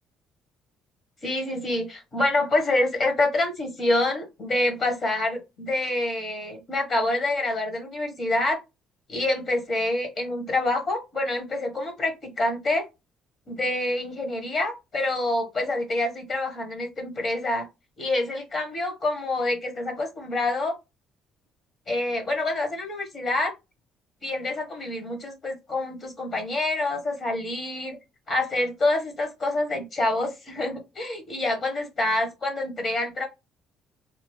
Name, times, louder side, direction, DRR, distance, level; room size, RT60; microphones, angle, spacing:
voice 1, 1.2-8.6 9.1-12.8 13.5-17.6 18.0-20.7 21.9-23.5 24.2-28.0 28.3-33.2, left 2 dB, 45° left, 4 dB, 1.0 m, -27 dB
2.6 x 2.4 x 3.0 m, 0.24 s
cardioid pair, 100°, 0 cm